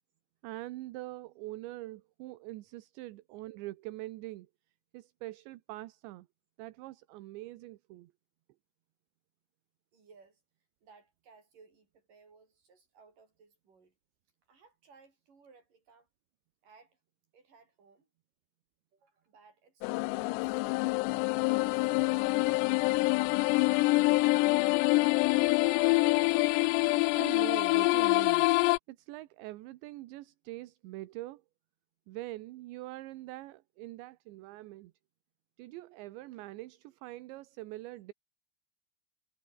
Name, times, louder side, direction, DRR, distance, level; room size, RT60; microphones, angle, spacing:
voice 1, 0.4-4.5 4.9-6.3 6.6-8.1 27.1-28.5 28.9-31.4 32.1-34.9 35.6-38.1, right 17 dB, 75° right, 3.2 m, -43 dB
voice 2, 9.9-10.4 10.8-13.9 14.5-16.1 16.6-17.0 17.3-18.1 18.9-20.9 21.4-25.8, right 4 dB, 45° right, 7.6 m, -60 dB
sound 1, 19.8-28.8, left 24 dB, 90° left, 2.4 m, -26 dB
omnidirectional pair, 5.4 m